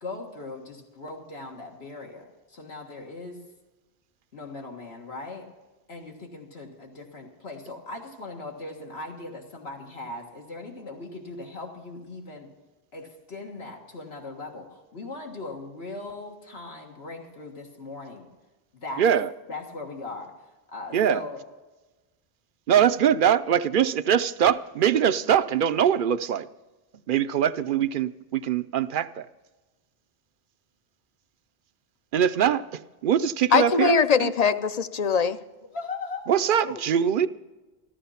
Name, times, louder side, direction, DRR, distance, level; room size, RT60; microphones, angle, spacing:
voice 1, 0.0-3.4 4.3-5.5 5.9-12.5 12.9-18.3 18.7-19.0 19.5-20.3 20.7-21.4 35.7-36.8, left 2 dB, 85° left, 0 dB, 2.0 m, -39 dB
voice 2, 19.0-19.3 20.9-21.2 22.7-26.5 27.1-29.3 32.1-34.3 36.3-37.3, right 9 dB, 60° right, 14 dB, 0.7 m, -22 dB
voice 3, 33.5-35.4, left 6 dB, 45° left, 12 dB, 0.6 m, -21 dB
14.0 x 14.0 x 5.7 m, 1.1 s
omnidirectional pair, 1.0 m